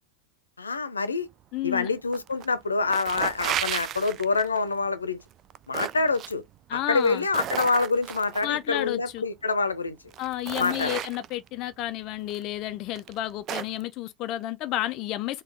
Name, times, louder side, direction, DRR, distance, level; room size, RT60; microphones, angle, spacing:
voice 1, 0.6-1.3 1.6-5.2 5.7-6.4 6.7-10.0 10.6-11.0, left 4 dB, 75° left, 0.7 m, -26 dB
voice 2, 1.5-1.9 6.7-7.2 8.4-9.2 10.2-15.4, left 14 dB, 35° left, 0.4 m, -31 dB
sound 1, 2.1-2.5 2.8-4.6 5.3-6.3 6.9-8.5 9.5-9.6 10.1-11.5 12.3-12.4 12.9-13.8, right 11 dB, 30° right, 0.3 m, -33 dB
4.1 x 2.3 x 4.6 m
figure-of-eight pair, 90°, 0 cm